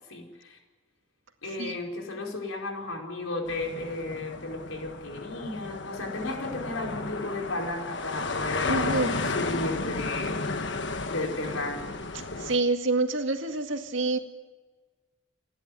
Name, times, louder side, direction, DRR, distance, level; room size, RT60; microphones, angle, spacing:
voice 1, 0.1-0.6 1.4-8.8 9.3-10.4 11.1-12.0, left 2 dB, 90° left, 2 dB, 5.0 m, -34 dB
sound 1, 3.5-12.6, left 3 dB, 60° left, 1.4 m, -33 dB
voice 2, 8.7-9.2 12.4-14.2, right 3 dB, 65° right, 5 dB, 2.1 m, -27 dB
29.5 x 11.5 x 9.5 m, 1.3 s
head